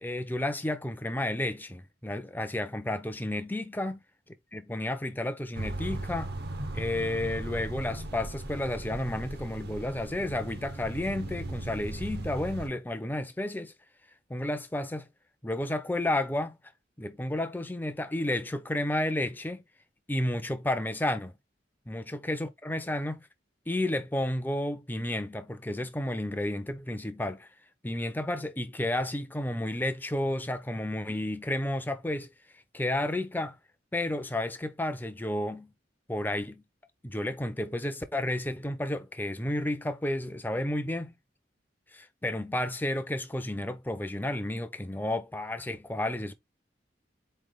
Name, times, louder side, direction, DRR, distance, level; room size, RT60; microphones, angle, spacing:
voice 1, 0.0-4.0 4.5-6.3 6.7-13.7 14.3-15.1 15.4-16.6 17.0-19.6 20.1-21.3 21.9-23.3 23.7-27.5 27.8-32.3 32.7-33.6 33.9-35.7 36.1-36.6 37.0-41.1 41.9-46.3, left 1 dB, 10° left, 0.6 m, -31 dB
sound 1, 5.5-12.7, right 1 dB, 60° right, 0.8 m, -37 dB
4.3 x 3.3 x 3.8 m
head